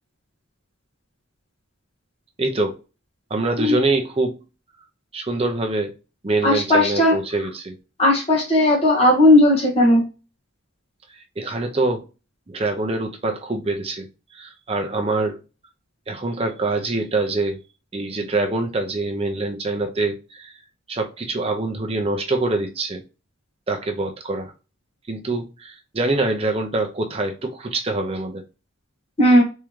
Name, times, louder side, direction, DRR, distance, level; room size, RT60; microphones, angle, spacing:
voice 1, 2.4-2.7 3.3-4.4 5.1-5.9 6.2-7.8 11.4-12.0 12.5-14.1 14.3-15.4 16.1-17.6 17.9-20.5 20.9-23.0 23.7-24.5 25.1-28.4, right 2 dB, 30° right, 0.5 m, -24 dB
voice 2, 6.4-7.1 8.0-10.0 29.2-29.4, left 1 dB, 30° left, 1.4 m, -16 dB
3.6 x 3.2 x 3.1 m
head